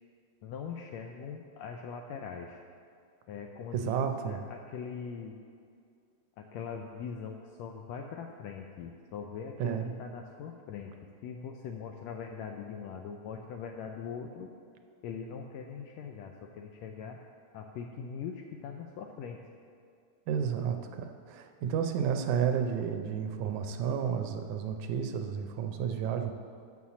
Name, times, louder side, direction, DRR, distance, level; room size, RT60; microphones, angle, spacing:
voice 1, 0.4-2.6 3.3-3.9 4.2-5.3 6.4-10.9 11.2-14.5 15.0-17.2 17.5-19.4, left 6 dB, 80° left, 3 dB, 1.5 m, -41 dB
voice 2, 3.7-4.4 9.6-9.9 20.3-26.3, right 7 dB, 80° right, 6 dB, 1.9 m, -31 dB
7.1 x 6.3 x 7.1 m, 2.3 s
omnidirectional pair, 3.5 m